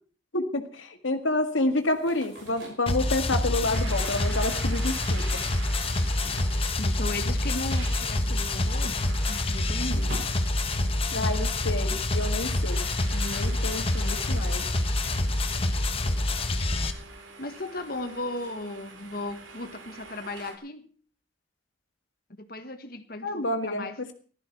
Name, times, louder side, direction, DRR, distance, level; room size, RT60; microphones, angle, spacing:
voice 1, 0.3-5.4 11.1-14.6 23.2-23.9, left 2 dB, 80° left, 1.9 m, -29 dB
sound 1, 1.7-7.2 7.5-11.4, equal, 60° right, 6.3 m, -47 dB
sound 2, 2.9-16.9, left 2 dB, 30° left, 1.1 m, -27 dB
sound 3, 3.7-20.6, right 3 dB, 80° right, 2.4 m, -45 dB
voice 2, 6.8-10.3 17.4-20.9 22.4-24.0, left 2 dB, 50° left, 1.4 m, -36 dB
15.5 x 13.0 x 4.6 m
head